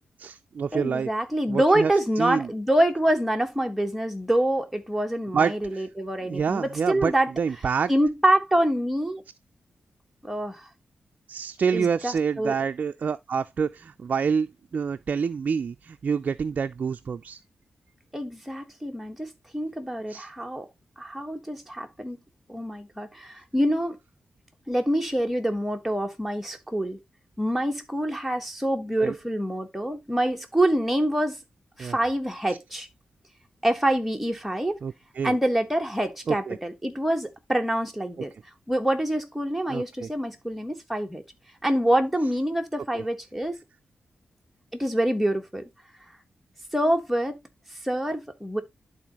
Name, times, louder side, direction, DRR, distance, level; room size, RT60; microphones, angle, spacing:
voice 1, 0.2-1.1 1.5-1.9 2.2-2.5 5.3-5.9 6.3-7.9 11.3-17.4 20.1-20.3 29.0-29.1 31.8-32.0 34.8-35.4 36.3-36.6 39.7-40.1 42.9-43.0, right 6 dB, 55° right, 0.4 m, -27 dB
voice 2, 0.7-7.3 7.9-9.2 10.2-10.7 11.7-12.5 18.1-20.7 21.0-22.2 22.5-24.0 24.7-27.0 27.4-31.4 31.8-32.9 33.6-34.8 35.2-38.3 38.7-41.2 41.6-43.6 44.7-45.6 46.7-47.3 47.8-48.6, right 1 dB, 5° right, 1.3 m, -26 dB
11.5 x 4.1 x 2.9 m
wide cardioid pair, 110°, 3 cm